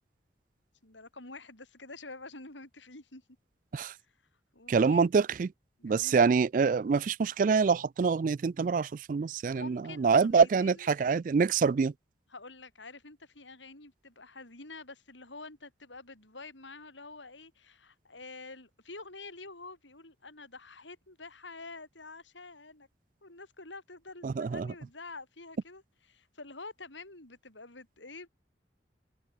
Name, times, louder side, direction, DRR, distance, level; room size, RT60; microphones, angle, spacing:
voice 1, 0.8-3.2 4.5-5.1 5.8-6.2 9.5-10.9 12.3-22.9 23.2-25.8 26.1-28.3, left 3 dB, 90° left, 7.0 m, -48 dB
voice 2, 4.7-5.5 5.8-11.9 24.2-24.7, right 5 dB, 45° right, 0.3 m, -26 dB
head